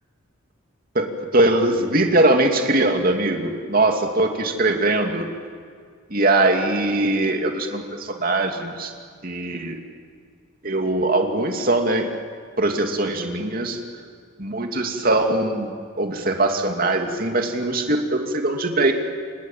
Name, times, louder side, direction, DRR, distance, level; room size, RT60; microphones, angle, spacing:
voice 1, 0.9-5.3 6.1-8.9 9.2-9.8 10.6-12.1 12.6-13.8 14.4-15.7 16.0-18.9, right 2 dB, 45° right, 4 dB, 2.8 m, -21 dB
29.0 x 26.5 x 7.5 m, 2.1 s
head